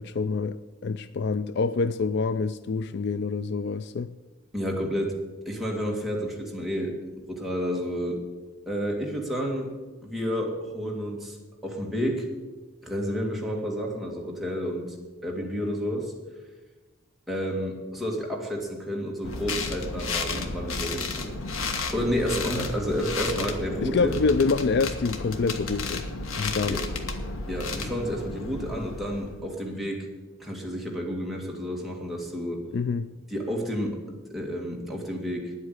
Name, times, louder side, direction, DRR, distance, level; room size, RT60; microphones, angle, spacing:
voice 1, 0.0-4.1 23.8-26.0 26.4-26.8 32.7-33.1, left 4 dB, 55° left, 14 dB, 0.4 m, -26 dB
voice 2, 4.5-5.2 5.5-8.2 8.7-9.7 10.0-11.4 11.6-12.3 12.8-14.9 15.2-16.1 17.3-21.3 21.9-24.1 26.7-26.8 27.5-30.1 30.4-32.6 33.3-34.0 34.3-35.5, equal, ahead, -2 dB, 2.1 m, -30 dB
sound 1, 19.2-29.4, left 3 dB, 80° left, 1.4 m, -32 dB
10.0 x 8.2 x 9.5 m, 1.3 s
head